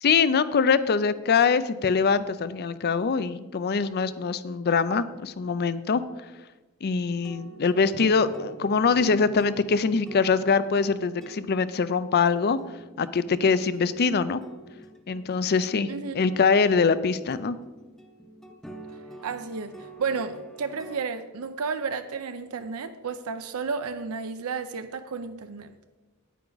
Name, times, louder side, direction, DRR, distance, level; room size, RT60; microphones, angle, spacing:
voice 1, 0.0-6.0 6.8-12.6 13.0-14.4 15.1-17.6, left 5 dB, 45° left, 15 dB, 0.5 m, -23 dB
sound 1, 7.1-21.0, right 2 dB, ahead, 0.7 m, -47 dB
voice 2, 19.2-25.7, right 5 dB, 75° right, 9 dB, 0.6 m, -32 dB
9.6 x 9.2 x 4.0 m, 1.2 s
head